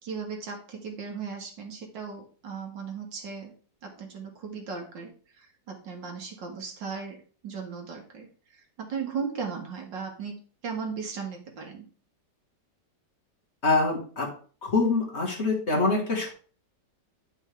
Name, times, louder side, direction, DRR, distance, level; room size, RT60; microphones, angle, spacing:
voice 1, 0.0-3.5 3.8-7.2 7.4-10.4 10.6-11.9, right 5 dB, 85° right, 2 dB, 2.3 m, -37 dB
voice 2, 13.6-14.3 14.6-16.3, left 3 dB, 35° left, -1 dB, 2.0 m, -25 dB
9.9 x 5.4 x 3.5 m, 0.42 s
omnidirectional pair, 1.9 m